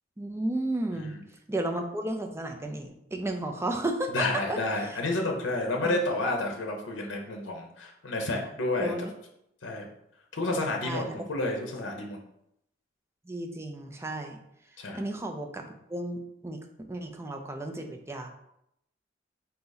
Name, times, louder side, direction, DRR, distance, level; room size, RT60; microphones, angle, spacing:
voice 1, 0.2-1.2 1.5-5.0 5.8-6.0 8.8-9.1 10.8-11.2 13.2-14.4 14.9-16.6 16.9-18.3, right 1 dB, 15° right, 4 dB, 0.4 m, -33 dB
voice 2, 4.1-9.1 9.6-9.9 10.3-12.2 14.8-15.0, left 2 dB, 75° left, 2 dB, 0.7 m, -30 dB
3.9 x 2.8 x 3.9 m, 0.78 s
head